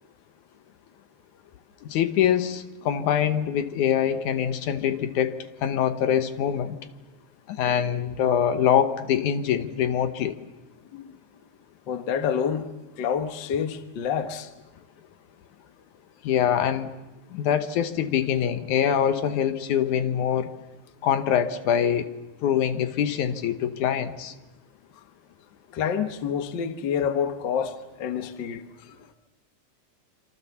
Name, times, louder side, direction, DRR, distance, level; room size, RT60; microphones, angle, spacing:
voice 1, 1.8-5.3 5.6-6.8 7.5-10.4 16.2-16.9 17.3-20.5 21.0-22.1 22.4-24.3, left 9 dB, 80° left, 2.6 m, -24 dB
voice 2, 11.9-12.6 13.0-14.5 25.7-28.6, left 7 dB, 50° left, 1.6 m, -28 dB
26.5 x 26.0 x 7.1 m
omnidirectional pair, 3.5 m